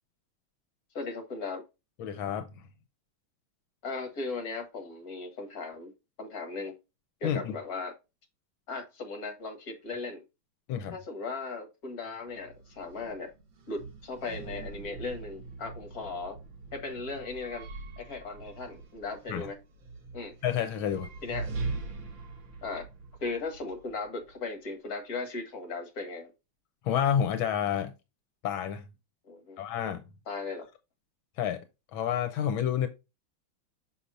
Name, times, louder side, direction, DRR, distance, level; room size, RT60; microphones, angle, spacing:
voice 1, 0.9-1.6 3.8-5.9 6.2-6.8 7.2-7.9 8.7-10.2 10.9-13.3 13.7-16.4 16.7-17.7 18.0-19.6 20.1-20.3 21.2-21.5 22.6-22.9 23.2-26.3 29.3-29.6 30.3-30.7, left 3 dB, 50° left, 2.2 m, -37 dB
voice 2, 2.0-2.5 7.2-7.5 10.7-11.0 19.3-19.5 20.4-21.1 26.8-27.9 28.4-28.8 29.6-30.0 31.4-31.6 31.9-32.9, left 9 dB, 85° left, 1.6 m, -29 dB
sound 1, 12.2-24.4, right 3 dB, 70° right, 2.0 m, -42 dB
6.5 x 5.7 x 2.5 m
omnidirectional pair, 2.2 m